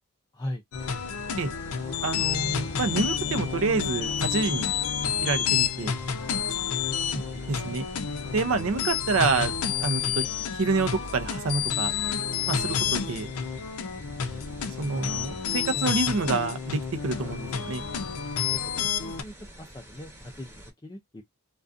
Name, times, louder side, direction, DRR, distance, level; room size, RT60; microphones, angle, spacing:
sound 1, 0.7-19.2, left 7 dB, 80° left, 0.5 m, -29 dB
sound 2, 0.8-20.7, right 1 dB, 10° right, 0.8 m, -48 dB
voice 1, 2.0-4.7 5.2-5.9 7.5-7.9 8.3-9.5 9.8-10.2 10.5-11.9 12.5-13.3 14.8-17.8, right 4 dB, 70° right, 0.5 m, -27 dB
voice 2, 7.1-7.5 15.7-15.9 18.4-21.2, left 1 dB, 20° left, 0.3 m, -39 dB
2.4 x 2.3 x 2.4 m
head